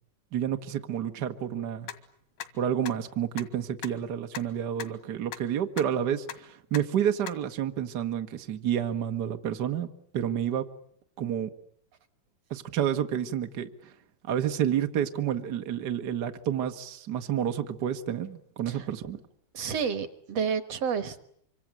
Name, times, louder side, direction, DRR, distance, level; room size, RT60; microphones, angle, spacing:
voice 1, 0.3-1.9 2.6-9.9 10.1-10.6 11.2-11.5 12.5-13.7 14.3-19.2, right 9 dB, 80° right, 6 dB, 0.9 m, -29 dB
sound 1, 1.9-2.0 2.4-2.5 2.8-2.9 3.4-3.5 3.8-3.9 4.3-4.4 4.8-4.9 5.3-5.4 5.8-5.9 6.3-6.4 6.7-6.8 7.3-7.4, left 11 dB, 80° left, 3.4 m, -37 dB
voice 2, 19.5-21.3, right 6 dB, 60° right, 11 dB, 1.8 m, -30 dB
25.5 x 25.5 x 9.1 m, 0.65 s
omnidirectional pair, 4.4 m